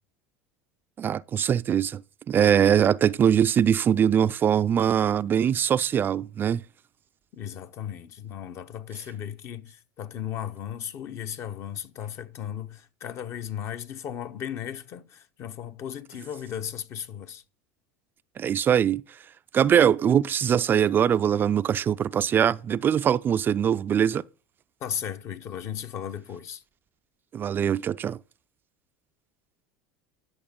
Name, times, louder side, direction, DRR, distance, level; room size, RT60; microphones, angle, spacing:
voice 1, 1.0-2.0 2.3-6.6 18.4-19.0 19.5-24.2 27.3-28.2, right 9 dB, 35° right, 0.4 m, -22 dB
voice 2, 7.3-17.4 24.8-26.6, left 9 dB, 50° left, 1.1 m, -36 dB
11.0 x 6.6 x 5.2 m
hypercardioid pair, 85°, 6 cm